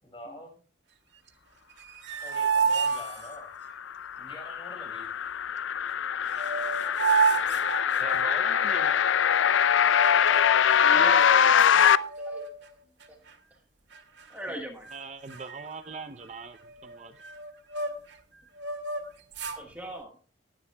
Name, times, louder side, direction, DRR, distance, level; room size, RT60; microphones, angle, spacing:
voice 1, 0.0-0.5 2.2-3.5 4.2-5.1 10.3-10.6, left 1 dB, 25° left, 2 dB, 4.8 m, -45 dB
sound 1, 1.7-3.7 5.9-6.0 6.3-8.5 9.8-10.7 11.2-11.3 11.6-12.7 13.0-13.3 13.9-14.5 14.8-15.0 15.3-18.2 18.6-19.6, right 5 dB, 60° right, 2.0 m, -30 dB
sound 2, 3.6-12.0, left 8 dB, 70° left, 0.4 m, -23 dB
voice 2, 8.0-9.0 14.5-14.6 14.9-17.2, right 4 dB, 35° right, 9 dB, 0.6 m, -41 dB
voice 3, 10.8-11.4 12.2-12.5 13.1-13.2 14.3-14.9 19.6-20.1, right 1 dB, 10° right, 1 dB, 1.3 m, -38 dB
19.0 x 9.8 x 2.2 m, 0.39 s
head